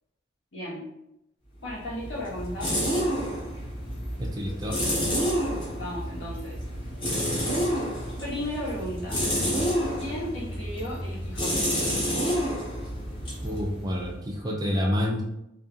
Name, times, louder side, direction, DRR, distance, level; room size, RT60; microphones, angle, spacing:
voice 1, 0.5-0.9 1.6-2.8 5.7-6.6 8.2-9.2 10.0-11.7, left 1 dB, 80° left, -8 dB, 1.3 m, -35 dB
sound 1, 1.7-14.3, equal, 25° left, 0.7 m, -29 dB
voice 2, 4.2-4.8 13.4-15.2, left 1 dB, 20° right, 0 dB, 0.3 m, -28 dB
2.6 x 2.2 x 2.4 m, 0.84 s
head